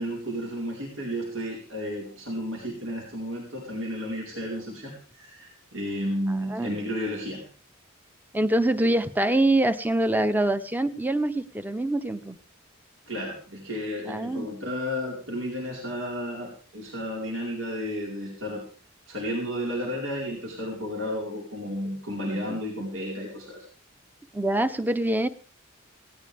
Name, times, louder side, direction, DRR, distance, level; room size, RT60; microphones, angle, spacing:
voice 1, 0.0-7.4 13.1-18.6 19.1-23.6, equal, 80° right, -2 dB, 4.6 m, -32 dB
voice 2, 6.3-6.8 8.3-12.4 14.1-14.5 22.3-22.6 24.3-25.3, right 1 dB, 10° right, 11 dB, 0.8 m, -25 dB
19.0 x 17.0 x 3.5 m, 0.39 s
head